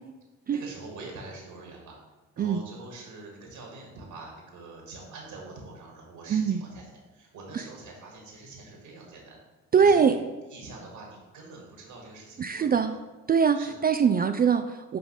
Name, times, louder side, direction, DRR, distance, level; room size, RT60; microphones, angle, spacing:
voice 1, 0.5-2.0 2.4-6.8 7.1-9.4 9.7-10.2 10.5-12.8 13.5-13.7, right 3 dB, 65° right, -1 dB, 1.9 m, -44 dB
voice 2, 6.3-6.6 7.5-7.6 9.7-10.2 12.4-13.0 13.3-15.0, right 6 dB, 25° right, 8 dB, 0.4 m, -22 dB
9.1 x 5.0 x 3.2 m, 1.2 s
hypercardioid pair, 45°, 37 cm